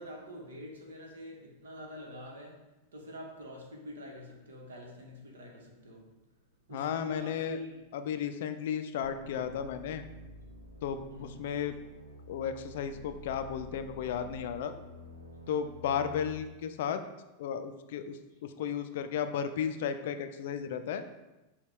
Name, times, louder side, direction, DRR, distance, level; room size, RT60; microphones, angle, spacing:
voice 1, 0.0-2.6 2.9-6.0 6.7-7.8 11.1-11.3, left 1 dB, 65° right, 0 dB, 1.0 m, -45 dB
voice 2, 6.7-7.6 7.9-10.0 10.8-11.8 12.3-14.7 15.5-17.0 17.4-21.0, left 8 dB, 55° left, 9 dB, 0.3 m, -34 dB
sound 1, 9.0-16.4, equal, 85° right, 0.6 m, -49 dB
5.8 x 2.3 x 3.5 m, 1.0 s
figure-of-eight pair, 90°, 0 cm